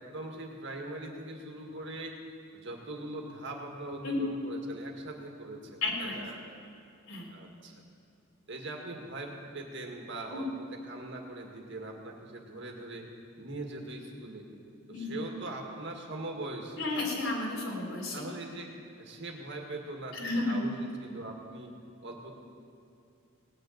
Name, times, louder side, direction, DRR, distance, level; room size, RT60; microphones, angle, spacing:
voice 1, 0.0-2.1 2.5-6.4 7.3-7.8 8.5-13.1 13.4-14.5 14.9-16.9 18.1-18.7 19.0-21.7 22.0-22.3, right 2 dB, 60° right, 1 dB, 1.9 m, -41 dB
voice 2, 5.8-6.2 7.1-7.3 10.3-10.4 14.9-15.2 16.8-18.2 20.1-20.6, left 2 dB, 75° left, -2 dB, 3.6 m, -32 dB
18.0 x 6.7 x 8.7 m, 2.6 s
head